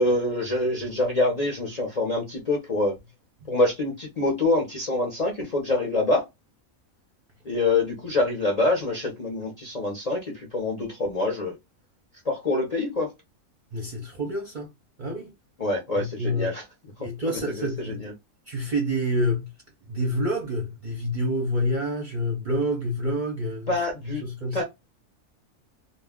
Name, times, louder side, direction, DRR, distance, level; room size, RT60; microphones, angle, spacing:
voice 1, 0.0-3.0 3.5-6.2 7.4-11.5 12.3-13.1 15.6-16.6 17.3-18.1 23.7-24.2 24.5-24.6, left 2 dB, 45° left, 0.5 m, -25 dB
voice 2, 13.7-14.7 15.0-15.3 16.0-16.5 17.0-18.0 18.5-19.5 19.9-23.7 24.0-24.6, equal, 45° right, 0.7 m, -28 dB
2.4 x 2.1 x 3.5 m
omnidirectional pair, 1.4 m